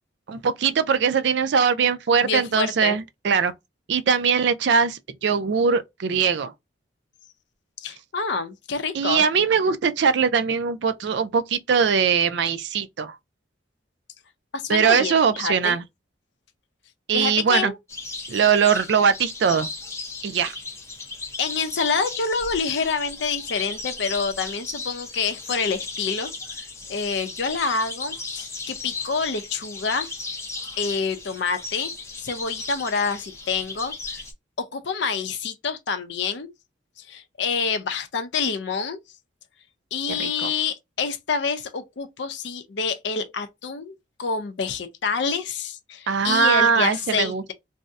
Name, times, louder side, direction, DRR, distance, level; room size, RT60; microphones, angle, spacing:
voice 1, 0.3-3.5 3.9-6.5 8.9-13.2 14.7-15.8 17.1-17.7 18.3-19.7 20.2-20.5 40.2-40.5 46.1-47.5, right 6 dB, 65° right, 0.4 m, -21 dB
voice 2, 2.2-3.0 7.8-9.2 14.5-15.8 17.1-17.8 21.4-30.1 30.8-31.9 32.2-34.2 34.6-36.5 37.0-39.0 39.9-47.5, left 5 dB, 65° left, 0.5 m, -27 dB
sound 1, 17.9-34.3, left 3 dB, 15° left, 0.5 m, -36 dB
2.6 x 2.0 x 3.4 m
head